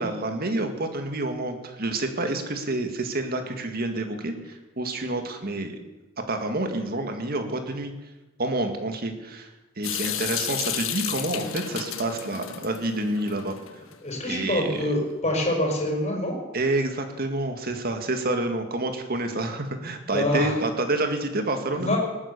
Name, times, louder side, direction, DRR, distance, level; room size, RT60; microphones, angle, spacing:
voice 1, 0.0-4.3 4.8-5.8 6.3-7.9 8.4-9.5 9.8-13.6 14.3-14.9 16.5-22.0, right 2 dB, 50° right, 6 dB, 1.9 m, -28 dB
Water tap faucet / Sink (filling or washing) / Drip, 9.8-13.9, left 9 dB, 80° left, 1.3 m, -32 dB
voice 2, 14.0-16.3 20.1-20.5 21.7-22.0, left 1 dB, 35° left, -1 dB, 5.1 m, -25 dB
19.0 x 9.5 x 6.9 m, 1.1 s
head